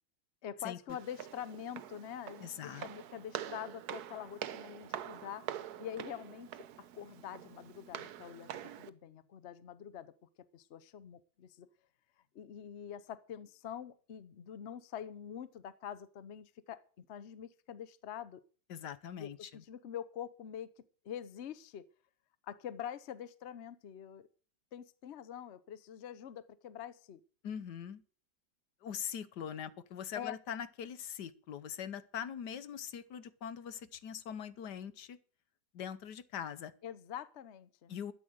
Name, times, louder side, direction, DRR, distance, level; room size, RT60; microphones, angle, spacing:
voice 1, 0.4-6.6 6.9-10.1 10.5-11.7 12.3-18.4 19.2-20.7 21.0-21.9 22.4-24.3 24.7-27.2 30.2-30.4 36.8-37.9, left 9 dB, 55° left, 0.8 m, -45 dB
Walk footsteps, 0.9-8.9, right 10 dB, 65° right, 1.2 m, -45 dB
voice 2, 2.4-2.8 18.7-19.6 27.4-28.0 28.8-35.2 35.7-36.7 37.9-38.1, left 8 dB, 70° left, 1.5 m, -42 dB
12.5 x 9.3 x 6.4 m
omnidirectional pair, 1.9 m